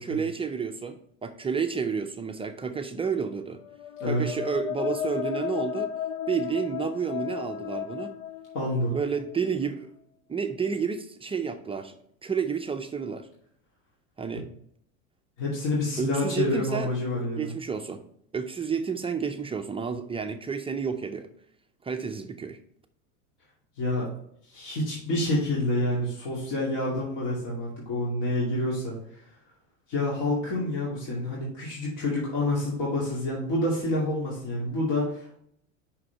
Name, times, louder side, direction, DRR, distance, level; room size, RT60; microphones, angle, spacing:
voice 1, 0.0-3.6 4.0-5.9 6.3-8.1 8.9-9.9 10.3-13.3 14.2-14.5 16.0-16.9 17.4-18.0 18.3-21.3 21.8-22.6, right 6 dB, 15° right, 6 dB, 0.5 m, -30 dB
sound 1, 3.6-9.3, left 9 dB, 85° left, 0.5 m, -34 dB
voice 2, 4.0-4.3 8.5-8.9 15.4-17.5 23.8-24.1 24.4-29.2 29.9-35.4, left 1 dB, 50° left, -5 dB, 2.4 m, -28 dB
5.6 x 4.8 x 4.5 m, 0.69 s
hypercardioid pair, 100°, 39 cm